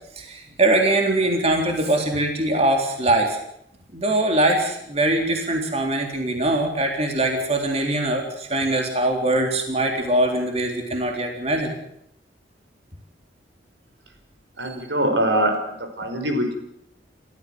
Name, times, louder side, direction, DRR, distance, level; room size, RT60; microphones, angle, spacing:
voice 1, 0.2-3.4 3.9-11.7, right 1 dB, 35° right, 2 dB, 3.8 m, -22 dB
voice 2, 14.6-16.5, right 1 dB, 80° right, 5 dB, 5.3 m, -23 dB
29.5 x 14.5 x 7.8 m, 0.74 s
head